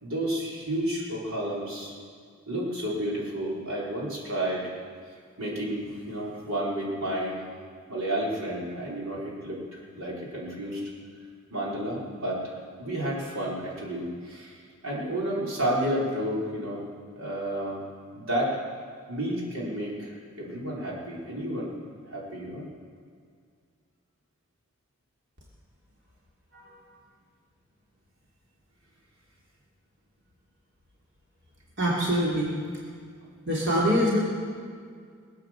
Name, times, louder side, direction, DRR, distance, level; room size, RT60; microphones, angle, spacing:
voice 1, 0.0-1.9 2.5-4.7 5.4-7.4 7.9-10.9 11.5-12.5 12.8-16.8 17.1-17.8 18.1-18.6 19.1-21.7 22.1-22.7, right 1 dB, 90° right, -5 dB, 4.1 m, -31 dB
voice 2, 31.8-32.5 33.5-34.2, equal, 55° right, -5 dB, 3.0 m, -24 dB
21.0 x 8.4 x 7.4 m, 2.1 s
head